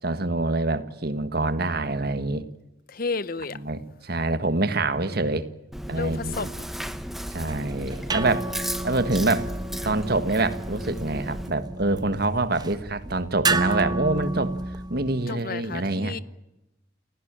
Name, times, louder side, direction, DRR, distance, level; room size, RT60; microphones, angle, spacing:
voice 1, 0.0-2.4 3.5-5.5 5.9-6.5 7.3-8.5 8.8-9.5 9.8-14.5 14.9-16.2, right 2 dB, 50° right, 1.5 m, -26 dB
voice 2, 2.9-3.6 5.9-6.7 8.2-8.3 15.3-16.2, left 4 dB, 45° left, 0.9 m, -32 dB
Chewing mastication, 5.7-11.5, equal, ahead, 1.0 m, -35 dB
sound 1, 7.3-15.3, right 3 dB, 20° right, 1.0 m, -32 dB
29.5 x 16.0 x 8.8 m
head